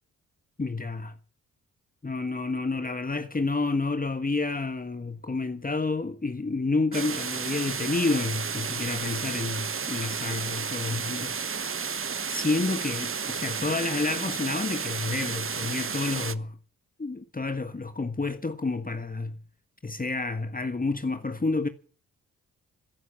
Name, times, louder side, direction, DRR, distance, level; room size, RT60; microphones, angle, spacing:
voice 1, 0.6-1.2 2.0-11.9 12.3-16.6 17.0-19.4 19.8-21.7, left 3 dB, 25° left, 1.5 m, -29 dB
sound 1, 6.9-16.3, right 6 dB, 35° right, 1.0 m, -32 dB
13.5 x 11.0 x 7.7 m
supercardioid pair, 45°, 35 cm